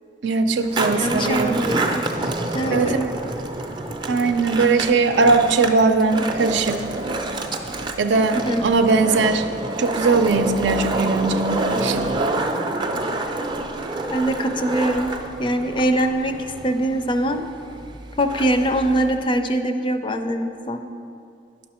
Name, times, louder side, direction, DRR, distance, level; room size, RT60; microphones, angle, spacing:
voice 1, 0.2-1.6 2.7-3.0 4.1-6.8 8.0-9.4 9.8-12.1, right 3 dB, 80° right, 7 dB, 0.5 m, -19 dB
Skateboard, 0.6-19.3, right 2 dB, 25° right, 0.5 m, -28 dB
voice 2, 1.0-2.0 2.5-3.1 8.3-8.7 14.1-15.1 15.4-16.4 16.6-17.5 18.2-20.8, right 1 dB, 30° left, 7 dB, 0.4 m, -22 dB
10.5 x 6.2 x 4.3 m, 2.6 s
head